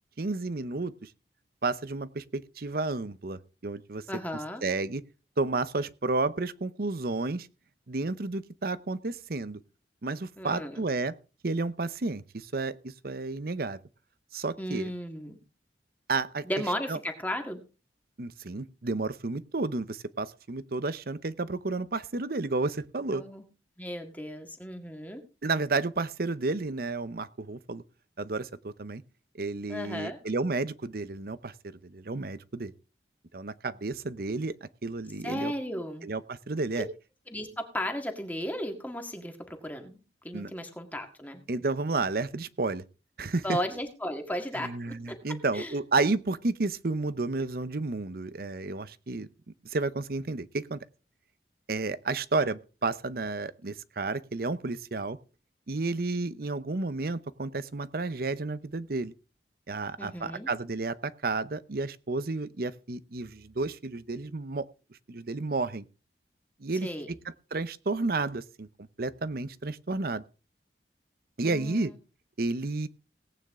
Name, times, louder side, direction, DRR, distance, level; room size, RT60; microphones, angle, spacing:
voice 1, 0.2-1.1 1.6-4.0 4.6-5.0 5.4-7.5 7.9-9.6 10.0-11.1 11.4-13.8 14.3-14.9 16.1-16.4 16.9-17.0 18.2-23.2 25.4-27.8 28.2-29.0 29.4-31.5 31.8-32.7 33.3-35.5 36.0-36.9 40.3-40.5 41.5-42.8 43.2-43.6 44.5-49.3 49.6-50.8 51.7-55.2 55.7-59.1 59.7-64.7 65.1-65.8 66.6-66.9 67.2-68.7 69.0-70.2 71.4-71.9 72.4-72.9, right 3 dB, 55° right, 15 dB, 0.8 m, -31 dB
voice 2, 4.1-4.6 10.4-10.8 14.6-15.4 16.4-17.6 23.1-23.4 23.8-25.2 29.7-30.2 35.2-36.1 37.3-40.0 40.2-41.4 43.4-45.2 45.5-45.7 60.0-60.5 66.8-67.1 71.4-72.0, equal, 10° left, 4 dB, 1.8 m, -35 dB
18.0 x 9.2 x 3.7 m, 0.33 s
head